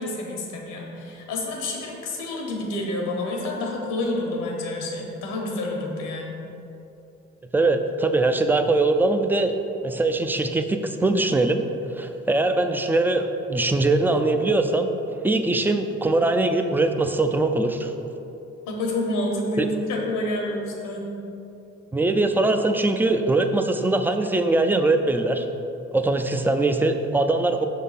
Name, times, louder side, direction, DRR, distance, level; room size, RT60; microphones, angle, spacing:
voice 1, 0.0-6.4 18.7-21.0, left 1 dB, 85° left, 0 dB, 1.3 m, -28 dB
voice 2, 7.5-9.6 9.8-11.6 12.0-14.9 15.2-17.9 19.6-19.7 21.9-25.5 25.9-27.7, right 2 dB, 5° right, 6 dB, 0.4 m, -22 dB
6.0 x 3.7 x 5.6 m, 2.8 s
cardioid pair, 90°, 30 cm